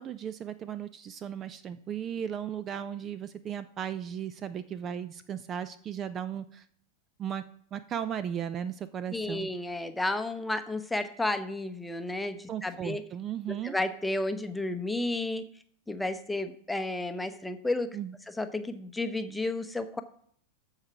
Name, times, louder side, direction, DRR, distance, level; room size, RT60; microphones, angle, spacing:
voice 1, 0.0-6.7 7.2-7.4 7.7-9.5 12.5-13.8 17.9-18.1, right 9 dB, 30° right, 15 dB, 0.5 m, -36 dB
voice 2, 9.1-13.0 13.5-15.4 15.9-17.9 18.4-20.0, left 2 dB, 5° left, 9 dB, 0.9 m, -32 dB
14.0 x 4.9 x 5.8 m, 0.64 s
figure-of-eight pair, 90°, 0 cm